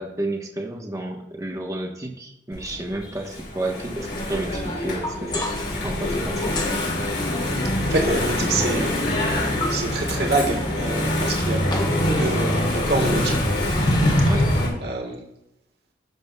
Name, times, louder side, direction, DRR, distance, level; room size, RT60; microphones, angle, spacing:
voice 1, 0.0-5.5 5.8-6.6 11.4-11.6 14.3-14.5, right 1 dB, 20° right, 1 dB, 1.0 m, -31 dB
Engine / Mechanisms, 2.5-14.7, left 1 dB, 80° left, 3.4 m, -24 dB
sound 1, 4.7-5.9 6.4-6.9 8.5-10.0 10.4-12.9 13.2-14.1, left 2 dB, 25° left, 1.0 m, -36 dB
voice 2, 7.9-9.0 9.4-13.4 14.8-15.2, right 2 dB, 70° right, 1 dB, 1.4 m, -26 dB
16.5 x 7.0 x 2.3 m, 0.84 s
head